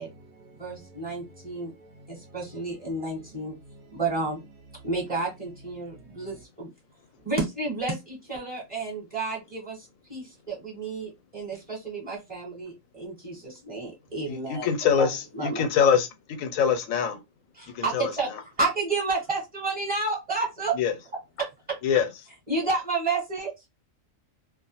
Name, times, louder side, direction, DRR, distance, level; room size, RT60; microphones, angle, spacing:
voice 1, 0.0-4.0 4.8-4.9 5.8-6.4 7.2-7.3, right 2 dB, 65° right, 0.8 m, -52 dB
voice 2, 0.6-1.7 2.1-3.5 3.9-4.4 4.8-6.7 7.2-14.7 15.0-15.1 15.3-15.7 17.6-18.3 18.6-20.7 21.4-21.5 22.5-23.7, right 3 dB, 30° right, 0.9 m, -31 dB
voice 3, 14.3-17.2 17.7-18.4 20.7-20.9 21.8-22.1, left 7 dB, 80° left, 1.0 m, -24 dB
2.3 x 2.1 x 2.8 m
omnidirectional pair, 1.4 m